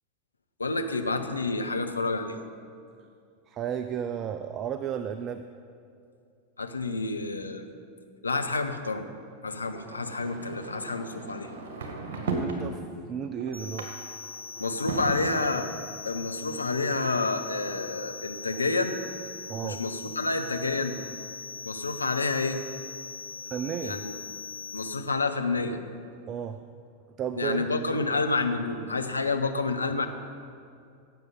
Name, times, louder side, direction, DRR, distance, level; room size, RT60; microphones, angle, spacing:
voice 1, 0.6-2.4 6.6-7.6 8.2-9.1 9.4-11.5 14.6-15.7 16.0-19.0 19.6-21.0 21.7-22.6 23.8-24.1 24.7-25.8 27.4-30.1, left 3 dB, 80° left, 6 dB, 0.8 m, -29 dB
voice 2, 3.5-5.4 12.3-13.9 19.5-19.8 23.5-24.0 26.3-26.6 27.2-27.7, right 8 dB, 30° right, 10 dB, 0.4 m, -33 dB
sound 1, 9.6-12.6 13.1-15.7 16.5-19.1 19.7-19.8 20.0-20.1 20.3-21.2, right 3 dB, 55° right, 1.8 m, -38 dB
sound 2, 13.5-24.9, left 4 dB, 85° right, 1.0 m, -41 dB
16.5 x 7.8 x 5.4 m, 2.4 s
figure-of-eight pair, 90°, 0 cm